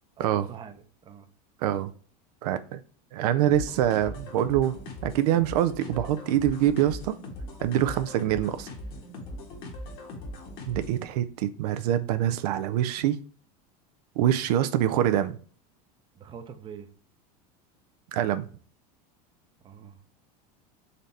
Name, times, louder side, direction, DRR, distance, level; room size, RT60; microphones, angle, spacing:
voice 1, 0.2-1.3 16.1-16.9 19.6-20.0, right 7 dB, 25° right, 0.6 m, -44 dB
voice 2, 1.6-1.9 2.4-2.8 3.1-4.8 5.0-7.2 7.6-8.7 10.7-13.2 14.2-15.4 18.1-18.5, right 11 dB, 80° right, 0.5 m, -25 dB
sound 1, 3.4-11.0, left 1 dB, 50° left, 1.5 m, -40 dB
3.9 x 3.3 x 4.1 m
supercardioid pair, 135°, 20 cm